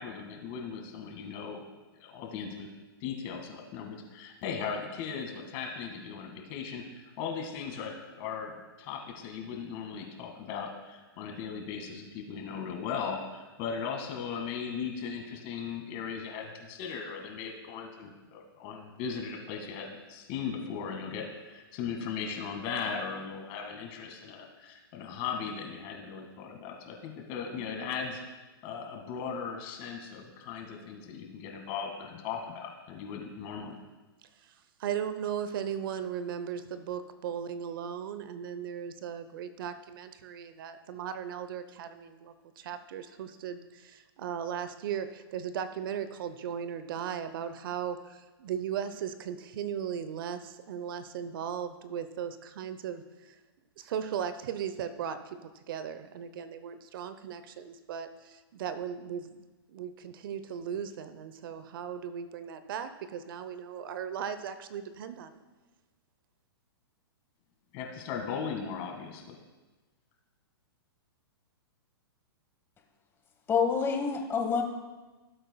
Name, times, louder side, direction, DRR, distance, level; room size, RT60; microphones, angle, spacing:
voice 1, 0.0-1.6 2.0-2.7 3.0-28.2 28.6-33.8 67.7-69.4, left 6 dB, 40° left, 2 dB, 2.0 m, -38 dB
voice 2, 34.8-53.3 53.8-59.4 59.7-65.4, right 8 dB, 60° right, 11 dB, 0.8 m, -37 dB
voice 3, 73.5-74.6, left 6 dB, 15° left, 4 dB, 1.2 m, -27 dB
17.5 x 7.8 x 2.3 m, 1.2 s
hypercardioid pair, 130°, 13 cm